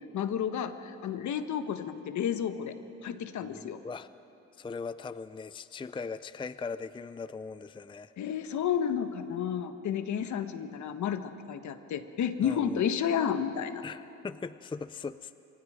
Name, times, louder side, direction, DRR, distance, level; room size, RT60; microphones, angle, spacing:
voice 1, 0.1-2.7 3.0-3.8 8.2-13.8, left 8 dB, 70° left, 9 dB, 1.4 m, -31 dB
voice 2, 3.5-4.1 4.6-8.1 12.4-12.8 13.8-15.3, left 5 dB, 15° left, 14 dB, 0.5 m, -39 dB
28.5 x 24.5 x 5.0 m, 2.8 s
cardioid pair, 90°, 30 cm